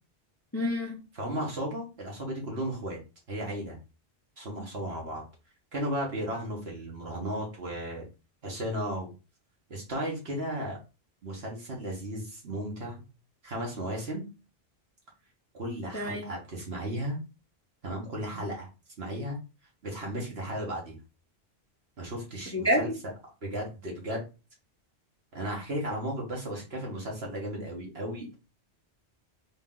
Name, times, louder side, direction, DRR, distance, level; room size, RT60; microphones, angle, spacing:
voice 1, 0.5-1.0 15.9-16.3 22.5-22.8, equal, 20° left, 0.5 m, -27 dB
voice 2, 1.1-3.0 3.3-3.8 4.4-5.2 5.7-8.1 8.4-9.1 9.7-10.8 11.2-13.0 13.4-14.3 15.5-17.2 17.8-18.7 19.0-19.4 19.8-21.0 22.0-22.9 23.4-24.2 25.3-28.3, right 1 dB, 70° right, 1.8 m, -35 dB
3.9 x 2.9 x 3.8 m
omnidirectional pair, 1.1 m